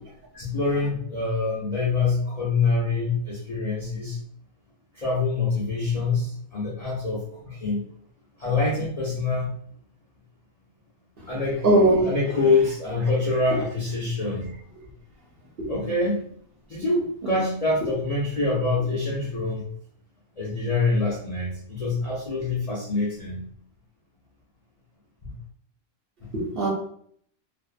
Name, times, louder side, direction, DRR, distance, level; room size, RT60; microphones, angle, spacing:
voice 1, 0.3-4.2 4.9-7.9 8.4-9.5 11.3-11.6 12.0-14.5 15.7-16.2 16.7-19.7 20.4-23.4 25.2-25.3 26.2-26.3, left 3 dB, 55° left, -6 dB, 0.4 m, -25 dB
voice 2, 11.6-12.1 17.2-17.3 26.3-26.7, right 2 dB, 55° right, -2 dB, 0.8 m, -19 dB
2.5 x 2.1 x 2.4 m, 0.62 s
omnidirectional pair, 1.4 m